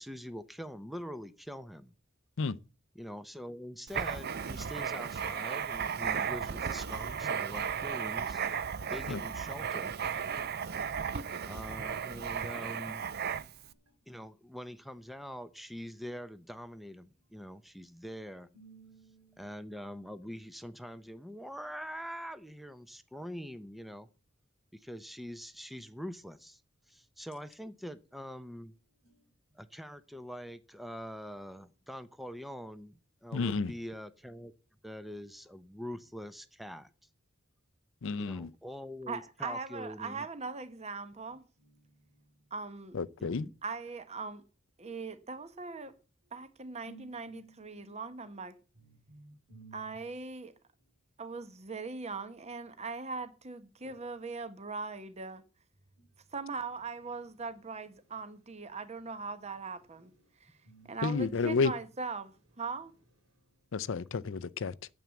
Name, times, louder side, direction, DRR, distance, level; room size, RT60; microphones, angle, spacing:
voice 1, 0.0-1.9 2.9-8.4 8.9-10.0 11.5-13.1 14.1-18.5 19.4-24.1 24.7-26.6 26.9-28.7 29.5-34.5 34.8-36.9 38.2-40.3 43.2-43.5, equal, ahead, 0.6 m, -44 dB
Writing, 3.9-13.7, right 7 dB, 50° right, 0.6 m, -35 dB
voice 2, 18.5-19.4 29.0-29.3 41.3-41.4 41.6-41.8 46.9-48.0 48.8-49.9 53.8-54.0 56.0-56.1 60.0-60.1 60.6-60.9, right 4 dB, 85° right, 3.4 m, -56 dB
voice 3, 33.3-33.7 38.0-38.5 42.9-43.5 61.0-61.7 63.7-64.7, left 4 dB, 70° left, 0.5 m, -31 dB
voice 4, 39.1-41.4 42.5-43.0 43.6-44.4 44.8-46.0 46.3-48.5 49.7-50.5 51.2-55.4 56.3-60.1 60.4-60.5 60.8-62.9, right 4 dB, 35° right, 0.9 m, -40 dB
9.3 x 7.1 x 8.1 m
head